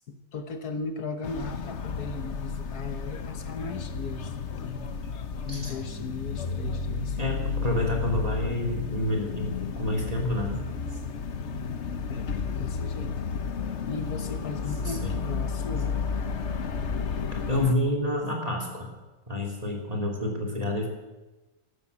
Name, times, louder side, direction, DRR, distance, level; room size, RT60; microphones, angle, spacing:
voice 1, 0.1-4.9 5.4-7.2 12.1-13.2 13.9-15.9, left 4 dB, 80° left, 8 dB, 1.7 m, -37 dB
sound 1, 1.2-17.7, left 5 dB, 50° left, 1.2 m, -32 dB
voice 2, 5.5-6.0 7.2-10.6 14.8-15.2 17.5-18.9 19.3-20.9, left 1 dB, 25° right, 1 dB, 3.2 m, -29 dB
13.5 x 12.5 x 8.6 m, 1.1 s
omnidirectional pair, 1.6 m